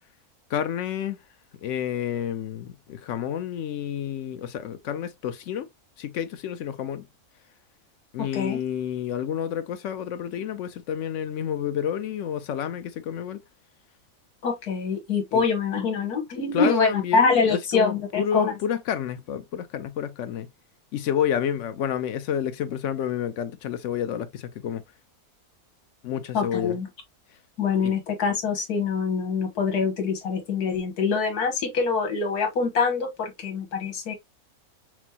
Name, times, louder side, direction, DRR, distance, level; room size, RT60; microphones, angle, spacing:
voice 1, 0.5-1.2 1.6-5.7 6.0-7.1 8.1-13.4 15.3-15.4 16.5-20.5 20.9-24.8 26.0-26.8 27.8-28.0, left 9 dB, 65° left, 0.8 m, -29 dB
voice 2, 14.4-18.5 26.3-26.9 27.6-34.1, left 5 dB, 90° left, 1.7 m, -25 dB
6.0 x 2.0 x 2.8 m
omnidirectional pair, 1.6 m